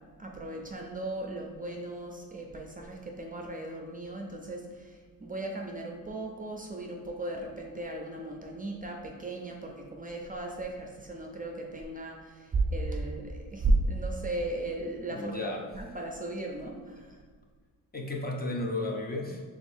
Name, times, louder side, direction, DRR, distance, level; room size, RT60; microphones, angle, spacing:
voice 1, 0.2-17.2, right 2 dB, 25° right, 1 dB, 0.4 m, -35 dB
voice 2, 15.1-15.7 17.9-19.4, left 2 dB, 25° left, 1 dB, 0.5 m, -33 dB
5.2 x 3.6 x 2.6 m, 1.5 s
cardioid pair, 110°, 35 cm